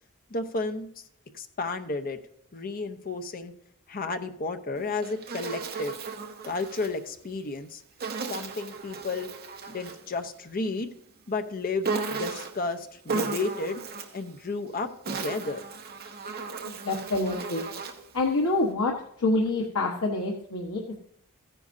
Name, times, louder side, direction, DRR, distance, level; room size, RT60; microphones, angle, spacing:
voice 1, 0.3-1.0 1.3-2.2 2.5-3.5 3.9-5.9 6.4-7.8 8.3-9.3 9.7-10.9 11.3-13.8 14.1-15.7, left 3 dB, 40° left, 7 dB, 0.8 m, -32 dB
Insect, 4.8-6.9 8.0-10.1 11.8-12.6 13.1-14.2 14.8-18.1, right 4 dB, 45° right, 1.1 m, -35 dB
voice 2, 16.6-17.7 18.1-18.9 19.2-20.9, left 2 dB, 75° left, -1 dB, 1.3 m, -27 dB
14.5 x 9.9 x 2.7 m, 0.71 s
head